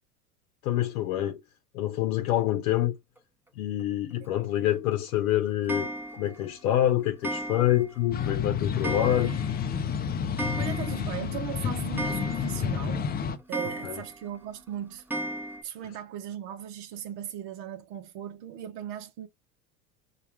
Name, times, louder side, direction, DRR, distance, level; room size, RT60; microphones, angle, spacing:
voice 1, 0.6-1.4 1.7-2.9 3.6-9.4 13.8-14.0, left 12 dB, 60° left, 0.9 m, -26 dB
Clock, 5.7-6.4 7.2-8.0 8.3-8.4 8.8-9.6 9.9-10.0 10.2-11.2 11.5-11.6 12.0-12.8 13.5-14.2 15.1-15.6, right 1 dB, 5° right, 0.9 m, -35 dB
sound 1, 8.1-13.4, left 7 dB, 20° left, 0.5 m, -30 dB
voice 2, 10.6-13.1 13.5-15.0 15.4-19.3, right 10 dB, 50° right, 0.8 m, -38 dB
5.6 x 2.4 x 3.2 m
figure-of-eight pair, 80°, 46 cm